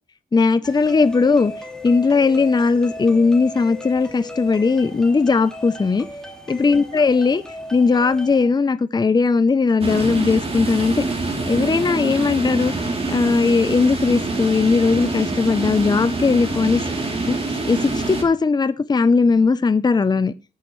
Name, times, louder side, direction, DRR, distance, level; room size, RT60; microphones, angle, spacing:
voice 1, 0.3-1.5 1.8-6.1 6.5-7.4 7.7-11.0 11.5-12.7 13.1-16.9 17.3-20.3, left 4 dB, 25° left, 0.6 m, -18 dB
sound 1, 0.6-8.4, left 1 dB, 5° left, 2.4 m, -36 dB
sound 2, 9.8-18.2, right 3 dB, 30° right, 3.1 m, -25 dB
18.5 x 9.3 x 3.2 m
wide cardioid pair, 120°, 18 cm